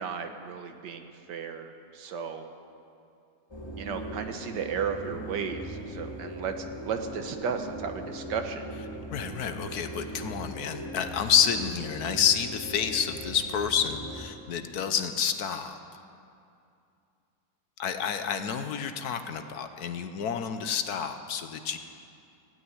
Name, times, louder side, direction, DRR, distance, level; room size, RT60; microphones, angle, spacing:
voice 1, 0.0-2.5 3.8-8.7, right 6 dB, 80° right, 6 dB, 1.7 m, -34 dB
sound 1, 3.5-14.3, right 1 dB, 15° left, 1.2 m, -40 dB
voice 2, 9.1-15.8 17.8-21.8, left 7 dB, 65° left, 8 dB, 1.3 m, -29 dB
16.0 x 9.1 x 9.6 m, 2.5 s
omnidirectional pair, 1.9 m